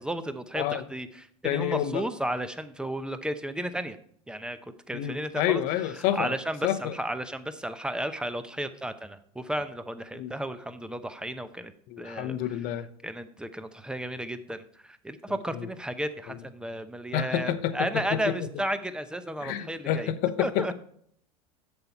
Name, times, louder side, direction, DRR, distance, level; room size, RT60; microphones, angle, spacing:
voice 1, 0.0-4.0 4.3-5.6 6.0-11.7 12.0-12.4 13.0-20.1 20.4-20.7, right 1 dB, 5° right, 11 dB, 0.8 m, -33 dB
voice 2, 1.4-2.0 4.9-6.3 6.6-6.9 10.1-10.3 11.9-12.9 15.5-15.7 16.3-16.4 17.1-18.5 19.4-20.7, left 11 dB, 55° left, 11 dB, 0.8 m, -29 dB
7.9 x 6.9 x 4.4 m, 0.62 s
hypercardioid pair, 85°, 18 cm